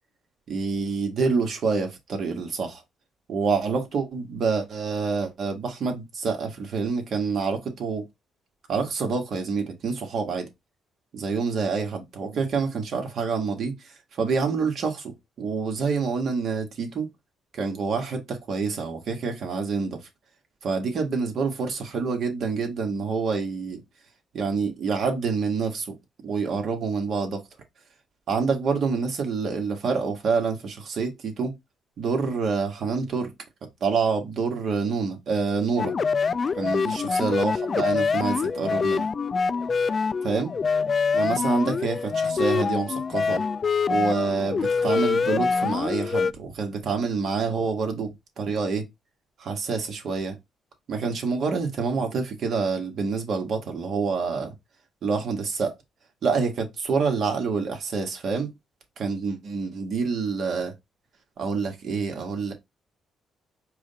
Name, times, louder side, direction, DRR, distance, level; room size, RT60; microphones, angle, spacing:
voice 1, 0.5-2.8 3.3-8.0 8.7-10.5 11.1-17.1 17.5-20.0 20.6-23.8 24.3-25.9 26.2-27.4 28.3-31.6 32.0-33.3 33.8-35.9 36.6-39.0 40.2-40.5 41.1-43.4 43.9-48.8 49.4-50.3 50.9-54.5 55.0-55.7 56.2-58.5 59.0-60.7 61.4-62.5, right 5 dB, 60° right, 1.6 m, -27 dB
sound 1, 35.8-46.3, left 5 dB, 40° left, 0.3 m, -25 dB
4.8 x 2.6 x 4.1 m
cardioid pair, 90°, 0 cm